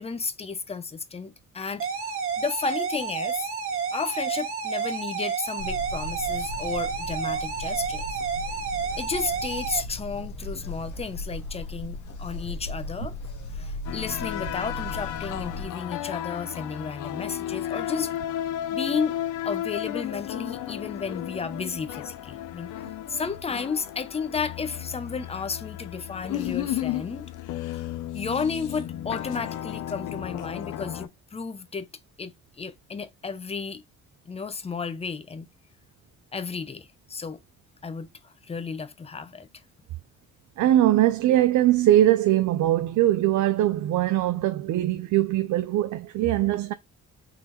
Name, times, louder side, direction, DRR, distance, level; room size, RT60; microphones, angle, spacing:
voice 1, 0.0-3.5 3.9-8.2 9.0-13.1 13.5-18.1 18.7-19.2 19.4-27.3 28.1-31.9 32.2-33.8 34.3-35.5 36.3-37.4 37.8-39.5, left 5 dB, 20° left, 0.6 m, -33 dB
sound 1, 1.8-9.8, right 6 dB, 45° right, 1.5 m, -30 dB
sound 2, 5.6-15.7, left 1 dB, 75° left, 1.0 m, -37 dB
sound 3, 13.9-31.1, left 12 dB, 90° left, 0.6 m, -33 dB
voice 2, 40.6-46.7, right 13 dB, 70° right, 0.5 m, -21 dB
3.9 x 3.2 x 2.9 m
cardioid pair, 90°, 30 cm